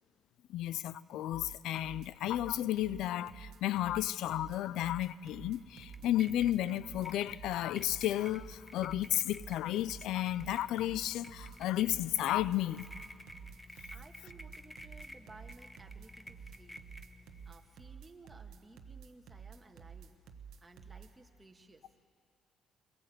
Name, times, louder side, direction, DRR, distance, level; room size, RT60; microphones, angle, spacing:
voice 1, 0.5-12.9, left 13 dB, 85° left, 0.4 m, -33 dB
sound 1, 1.3-21.1, right 7 dB, 85° right, 1.1 m, -51 dB
sound 2, 5.7-17.5, left 1 dB, 5° left, 1.0 m, -53 dB
voice 2, 13.9-16.8 17.4-20.2 20.6-21.9, right 3 dB, 20° right, 1.6 m, -57 dB
22.5 x 17.5 x 7.8 m
cardioid pair, 90°, 0 cm